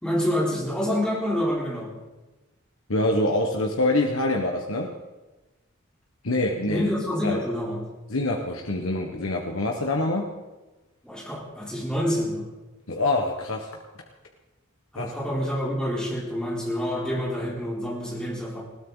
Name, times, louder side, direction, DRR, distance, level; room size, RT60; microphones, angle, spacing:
voice 1, 0.0-1.9 6.7-7.8 11.0-12.4 14.9-18.6, equal, 5° left, -4 dB, 3.9 m, -27 dB
voice 2, 2.9-4.9 6.2-6.9 7.2-7.4 8.1-10.3 12.9-13.7 14.9-15.1, left 2 dB, 75° left, 1 dB, 1.5 m, -25 dB
20.5 x 16.5 x 4.0 m, 1.1 s
head